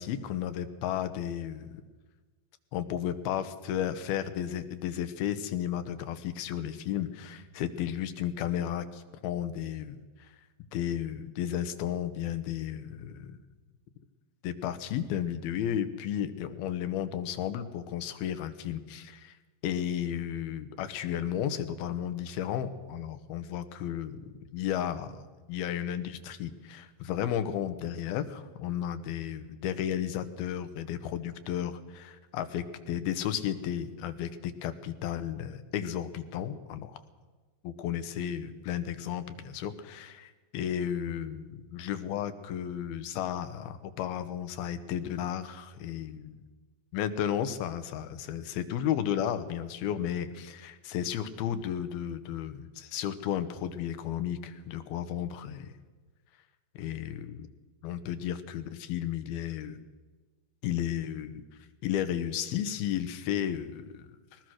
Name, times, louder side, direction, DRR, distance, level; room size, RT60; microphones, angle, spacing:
voice 1, 0.0-1.7 2.7-10.3 10.7-13.4 14.4-19.4 19.6-25.2 25.5-37.0 37.6-46.4 46.9-55.7 56.8-57.5 57.8-59.8 60.6-61.4 61.8-64.4, left 10 dB, 90° left, 11 dB, 3.0 m, -33 dB
20.5 x 19.5 x 6.4 m, 1.3 s
omnidirectional pair, 4.3 m